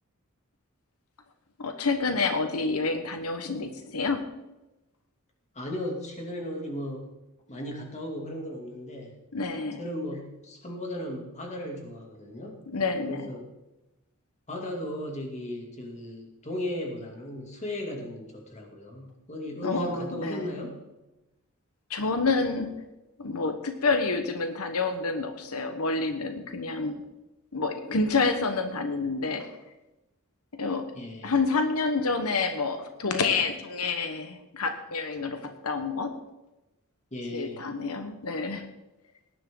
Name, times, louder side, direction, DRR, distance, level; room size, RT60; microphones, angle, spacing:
voice 1, 1.6-4.2 9.3-9.8 12.7-13.3 19.6-20.5 21.9-22.7 23.2-27.0 27.5-29.5 30.6-30.8 31.2-36.1 37.3-38.6, left 4 dB, 90° left, 7 dB, 1.2 m, -28 dB
voice 2, 5.5-7.0 7.5-9.1 9.8-12.6 13.1-13.5 14.5-20.8 30.9-31.3 37.1-37.6, left 1 dB, 30° left, 1 dB, 2.8 m, -36 dB
18.0 x 11.0 x 3.9 m, 1.0 s
head